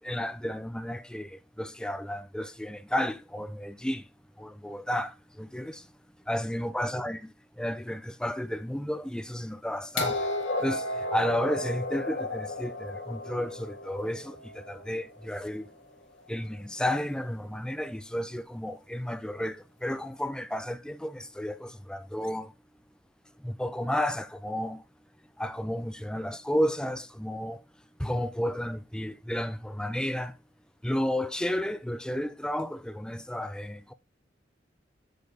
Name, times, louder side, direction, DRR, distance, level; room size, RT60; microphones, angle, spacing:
voice 1, 0.0-4.1 4.4-5.9 6.3-7.3 7.6-10.2 10.6-15.7 16.3-22.5 23.4-24.8 25.4-27.6 28.0-30.3 30.8-33.9, left 1 dB, 5° left, 0.4 m, -32 dB
sound 1, 10.0-15.8 16.9-17.0, left 2 dB, 85° left, 1.8 m, -34 dB
7.8 x 7.4 x 3.3 m
head